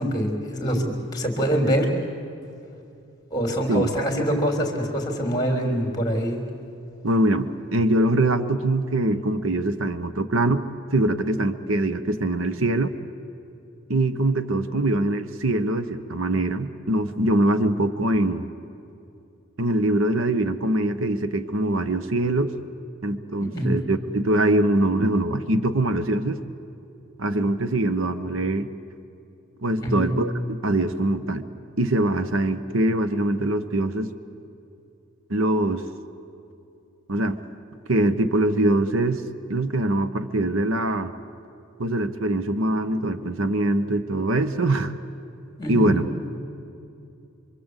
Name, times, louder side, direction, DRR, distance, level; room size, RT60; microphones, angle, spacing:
voice 1, 0.0-1.9 3.3-6.4 23.4-23.7 29.8-30.1 45.6-46.0, equal, 20° left, 3 dB, 3.4 m, -24 dB
voice 2, 7.0-10.6 10.9-12.9 13.9-18.4 19.6-22.5 23.0-26.4 27.2-28.7 29.6-31.5 31.8-34.2 35.3-35.8 37.1-37.4 37.9-39.2 39.5-41.1 41.8-44.9 45.7-46.0, right 1 dB, 75° right, 11 dB, 1.0 m, -23 dB
26.5 x 24.5 x 8.2 m, 2.7 s
head